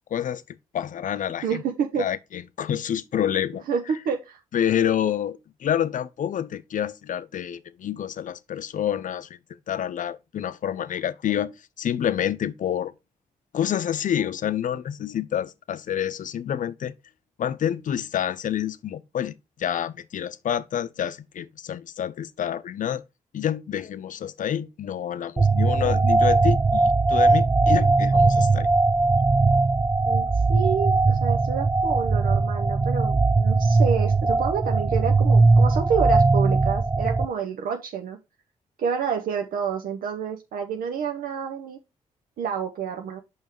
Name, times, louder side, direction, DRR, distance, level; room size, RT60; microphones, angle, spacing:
voice 1, 0.1-1.6 2.0-3.6 4.5-9.4 9.7-11.5 11.8-12.9 13.5-16.9 17.4-23.0 23.3-28.7, left 10 dB, 60° left, 0.6 m, -28 dB
voice 2, 1.4-2.1 3.7-4.4 30.1-38.2 38.8-41.8 42.4-43.2, right 7 dB, 75° right, 0.7 m, -29 dB
sound 1, 25.4-37.3, right 3 dB, 15° right, 0.4 m, -20 dB
5.5 x 4.7 x 4.6 m
supercardioid pair, 45°, 15 cm